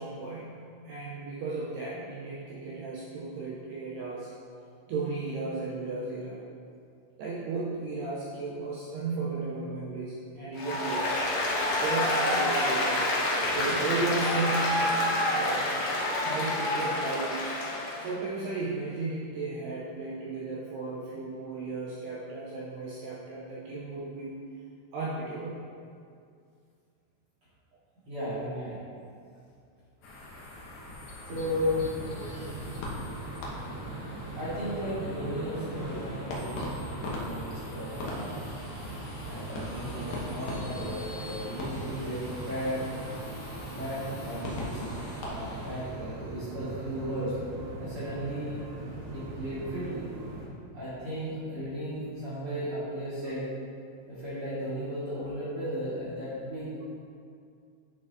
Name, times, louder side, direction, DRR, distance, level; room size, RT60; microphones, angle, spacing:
voice 1, 0.0-4.3 4.9-6.4 7.2-11.1 11.8-13.1 13.5-14.9 15.3-15.7 16.2-17.5 18.0-24.4 24.9-25.6, right 3 dB, 85° right, -7 dB, 2.3 m, -34 dB
Applause, 10.6-18.1, left 1 dB, 75° left, 2.0 m, -28 dB
voice 2, 28.1-28.8 31.2-32.2 34.4-37.0 37.2-38.4 39.3-43.2 43.7-47.4 47.8-48.7 49.1-50.1 50.7-53.5 54.1-56.7, equal, 50° right, -12 dB, 1.7 m, -35 dB
sound 1, 30.0-46.0, left 1 dB, 90° left, 1.9 m, -40 dB
sound 2, 31.3-50.5, right 2 dB, 65° right, 3.6 m, -40 dB
10.5 x 6.9 x 2.8 m, 2.3 s
omnidirectional pair, 5.8 m